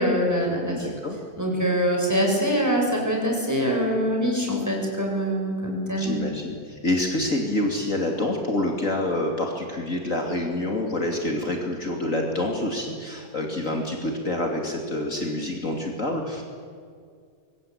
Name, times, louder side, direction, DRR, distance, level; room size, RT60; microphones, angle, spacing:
voice 1, 0.0-0.9 1.4-6.2, equal, 10° right, -1 dB, 7.0 m, -24 dB
voice 2, 0.7-1.2 6.0-16.4, left 1 dB, 45° left, 1 dB, 3.1 m, -27 dB
25.0 x 23.5 x 8.9 m, 2.2 s
omnidirectional pair, 1.9 m